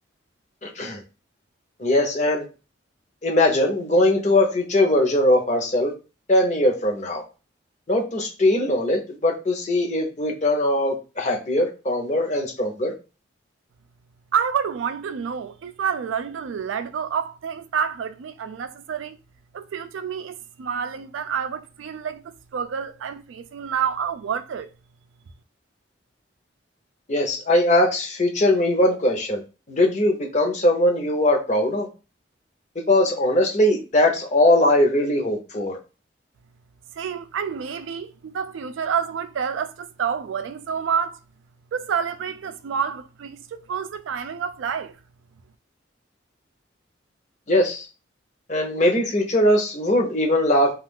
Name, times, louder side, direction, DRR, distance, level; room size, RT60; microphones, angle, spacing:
voice 1, 0.6-1.0 1.8-2.4 3.2-5.9 6.3-7.2 7.9-12.9 27.1-29.4 29.7-31.9 32.9-35.7 47.5-47.8 48.5-50.7, left 1 dB, 40° left, 0.7 m, -20 dB
voice 2, 14.3-19.2 19.5-24.7 37.0-41.2 41.7-44.9, right 7 dB, 80° right, 0.3 m, -28 dB
2.4 x 2.3 x 3.4 m
head